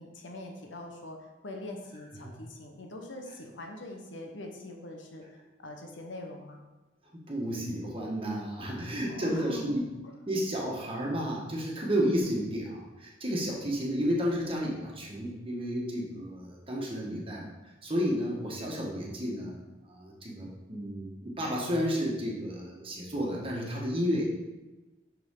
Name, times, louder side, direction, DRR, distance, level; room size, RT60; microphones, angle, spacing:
voice 1, 0.0-5.2 5.6-6.6 9.1-9.8 10.0-10.1, left 1 dB, 80° left, 2 dB, 1.0 m, -43 dB
voice 2, 7.1-9.8 10.3-17.5 17.8-19.6 19.8-24.3, equal, 30° right, -3 dB, 1.4 m, -32 dB
6.8 x 6.1 x 3.8 m, 1.1 s
head